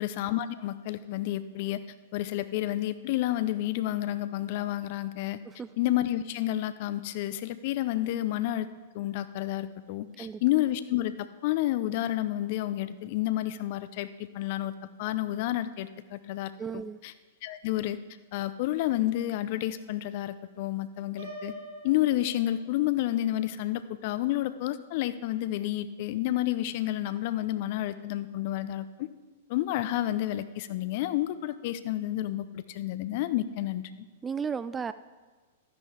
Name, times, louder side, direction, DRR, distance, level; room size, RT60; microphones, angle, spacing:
voice 1, 0.0-1.8 2.1-5.4 5.8-8.7 8.9-14.1 14.3-14.7 15.0-16.5 17.0-17.1 17.4-18.0 18.3-21.5 21.8-29.1 29.5-33.9, left 14 dB, 50° left, 14 dB, 0.5 m, -30 dB
voice 2, 16.6-17.0 34.2-34.9, right 6 dB, 15° right, 14 dB, 0.3 m, -34 dB
Piano, 21.2-23.1, right 1 dB, 70° right, 3.5 m, -44 dB
12.5 x 10.0 x 3.3 m, 1.3 s
figure-of-eight pair, 105°, 0 cm